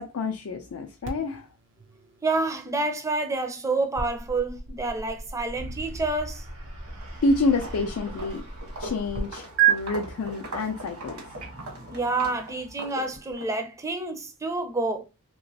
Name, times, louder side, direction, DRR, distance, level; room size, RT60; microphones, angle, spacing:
voice 1, 0.0-1.5 7.2-8.4 8.8-11.2, left 3 dB, 70° left, 0.4 m, -28 dB
sound 1, 1.0-9.2 9.6-9.7, right 10 dB, 55° right, 0.6 m, -32 dB
voice 2, 2.2-6.5 11.5-15.0, right 3 dB, 15° right, 0.5 m, -28 dB
sound 2, 5.5-12.7, right 1 dB, 90° right, 1.6 m, -44 dB
Walk footsteps, 6.9-7.2 7.5-13.5, right 1 dB, 70° right, 1.1 m, -40 dB
3.0 x 2.9 x 2.7 m
head